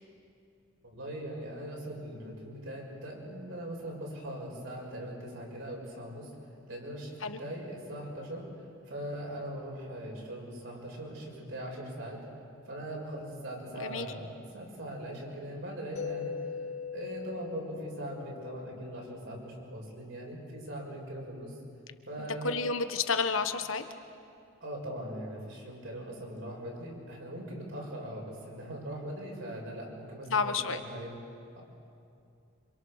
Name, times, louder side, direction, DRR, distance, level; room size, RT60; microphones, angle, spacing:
voice 1, 0.9-6.3 6.7-12.2 12.7-16.3 16.9-21.5 22.1-22.5 24.6-31.2, right 1 dB, 70° right, -2 dB, 6.6 m, -40 dB
voice 2, 13.8-14.1 22.4-23.8 30.3-30.8, left 4 dB, 75° left, 9 dB, 1.3 m, -30 dB
Mallet percussion, 16.0-19.7, left 6 dB, 50° left, 3.9 m, -41 dB
28.0 x 26.0 x 6.6 m, 2.6 s
head